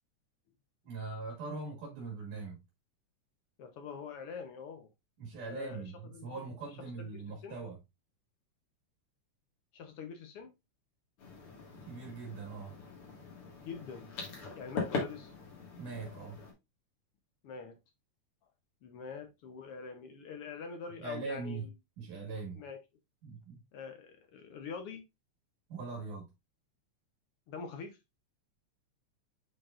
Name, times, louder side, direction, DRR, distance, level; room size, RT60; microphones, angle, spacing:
voice 1, 0.8-2.6 5.2-7.8 11.9-12.8 15.8-16.4 21.0-21.7 22.0-22.6 23.2-23.6 25.7-26.3, right 4 dB, 80° right, 3.1 m, -41 dB
voice 2, 3.6-4.9 5.5-6.3 7.0-7.6 9.7-10.5 13.6-14.1 14.5-15.3 17.4-17.8 18.8-21.7 22.5-22.8 23.7-25.0 27.5-28.0, left 5 dB, 70° left, 1.4 m, -44 dB
sound 1, 11.2-16.5, left 4 dB, 50° left, 2.6 m, -41 dB
9.1 x 4.6 x 2.5 m
omnidirectional pair, 3.5 m